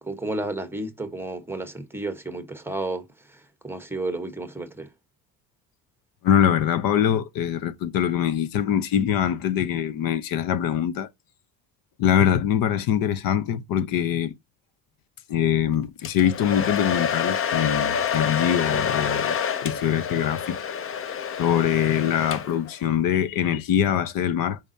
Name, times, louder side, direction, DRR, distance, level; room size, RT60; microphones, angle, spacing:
voice 1, 0.0-4.9, right 2 dB, 5° right, 1.2 m, -32 dB
voice 2, 6.2-11.1 12.0-14.3 15.3-20.6 21.4-24.6, left 9 dB, 70° left, 0.9 m, -23 dB
Domestic sounds home sounds, 16.0-22.7, left 7 dB, 35° left, 0.7 m, -27 dB
6.9 x 5.2 x 2.8 m
cardioid pair, 125°, 36 cm